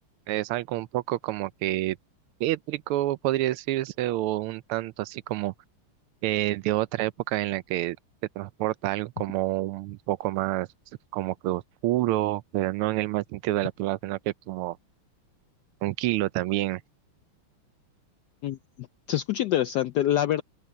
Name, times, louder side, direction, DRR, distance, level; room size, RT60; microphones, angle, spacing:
voice 1, 0.3-2.0 2.4-5.5 6.2-8.0 8.4-10.7 11.1-14.8 15.8-16.8, right 16 dB, 80° right, 1.5 m, -28 dB
voice 2, 18.4-20.4, left 12 dB, 85° left, 0.9 m, -26 dB
open air
omnidirectional pair, 2.4 m